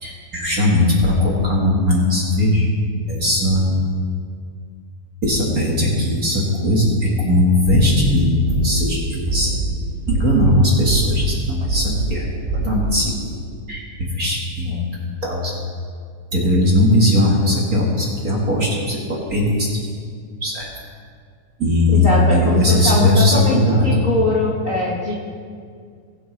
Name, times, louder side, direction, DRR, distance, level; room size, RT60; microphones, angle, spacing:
voice 1, 0.0-2.7 3.1-3.8 5.2-9.5 10.1-12.2 12.6-13.4 13.7-13.8 14.1-14.8 15.2-15.6 16.3-19.9 20.4-20.7 21.6-24.0, left 1 dB, 40° right, -3 dB, 1.6 m, -18 dB
sound 1, 7.6-8.1 8.5-8.9 9.3-9.7 10.1-10.5 10.9-11.3 11.7-12.1 12.5-12.9, right 3 dB, 15° right, 1.8 m, -23 dB
voice 2, 21.9-25.1, left 2 dB, 55° left, -4 dB, 0.8 m, -22 dB
19.5 x 7.9 x 3.3 m, 2.1 s
omnidirectional pair, 3.4 m